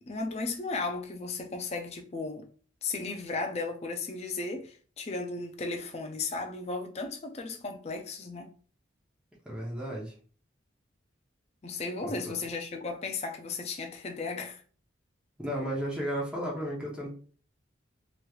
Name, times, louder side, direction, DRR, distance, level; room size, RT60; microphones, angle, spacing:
voice 1, 0.1-2.5 2.8-8.5 11.6-14.6, left 3 dB, 35° left, 0.4 m, -35 dB
voice 2, 9.4-10.1 12.0-12.2 15.4-17.1, equal, 5° right, 0.8 m, -33 dB
3.0 x 3.0 x 2.3 m
head